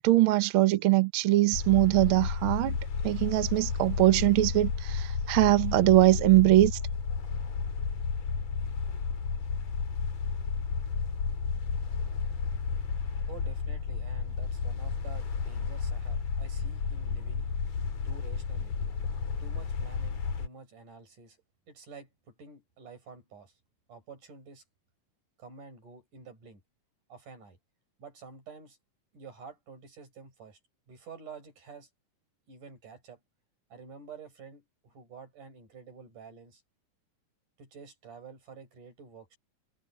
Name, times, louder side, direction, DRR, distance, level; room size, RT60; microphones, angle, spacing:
voice 1, 0.0-2.8 3.0-6.7, right 17 dB, 90° right, 1.1 m, -22 dB
sound 1, 1.5-20.5, left 5 dB, 55° left, 3.6 m, -32 dB
voice 2, 13.2-17.5 18.0-18.7 19.4-21.4 21.7-23.5 23.9-24.6 25.4-26.6 27.1-27.6 28.0-28.8 29.1-30.6 30.9-31.9 32.5-33.2 33.7-36.6 37.6-39.4, right 5 dB, 70° right, 7.7 m, -49 dB
omnidirectional pair, 3.7 m